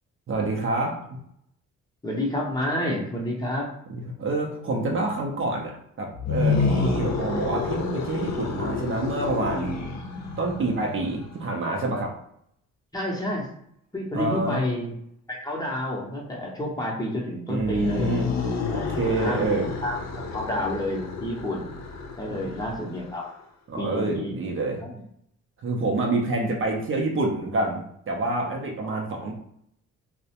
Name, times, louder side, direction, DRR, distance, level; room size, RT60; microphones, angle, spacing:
voice 1, 0.3-1.2 3.9-9.8 10.4-12.1 14.1-14.7 17.5-18.3 18.7-19.7 22.3-22.6 23.7-24.8 25.6-29.3, right 2 dB, 45° right, 0 dB, 0.5 m, -27 dB
voice 2, 2.0-3.7 12.9-13.5 13.9-14.9 15.3-18.1 18.7-18.9 19.2-19.4 19.8-20.0 20.3-21.8 22.2-23.2 23.8-24.4 24.8-24.9 29.2-29.3, left 1 dB, 15° left, -3 dB, 0.7 m, -29 dB
sound 1, 6.1-11.3 17.5-23.2, left 4 dB, 60° left, 0.6 m, -29 dB
2.3 x 2.1 x 2.8 m, 0.72 s
cardioid pair, 90°, 30 cm